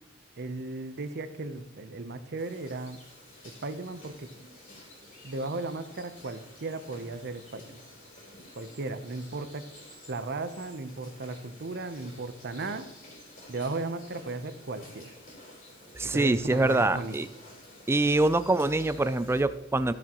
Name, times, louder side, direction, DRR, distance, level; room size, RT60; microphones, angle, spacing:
voice 1, 0.4-3.0 3.6-4.3 5.2-7.8 8.6-9.7 10.1-12.9 13.5-15.1 16.1-17.2, right 3 dB, 50° right, 10 dB, 0.7 m, -36 dB
sound 1, 2.4-19.4, left 1 dB, 40° left, 3.7 m, -51 dB
voice 2, 15.9-17.3 17.9-19.9, right 2 dB, 10° right, 13 dB, 0.3 m, -25 dB
14.0 x 7.5 x 3.0 m, 0.94 s
head